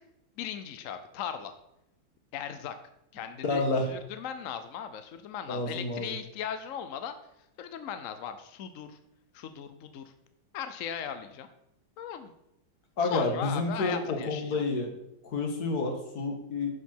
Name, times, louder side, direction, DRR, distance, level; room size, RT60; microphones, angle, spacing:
voice 1, 0.4-1.5 2.3-2.8 3.1-7.2 7.6-9.0 9.3-10.1 10.5-11.5 12.0-12.3 13.0-14.6, left 8 dB, 70° left, 10 dB, 0.7 m, -38 dB
voice 2, 3.4-3.9 5.5-6.1 13.0-14.9 15.2-16.7, left 3 dB, 50° left, 3 dB, 2.0 m, -29 dB
10.5 x 6.9 x 4.5 m, 0.84 s
omnidirectional pair, 2.3 m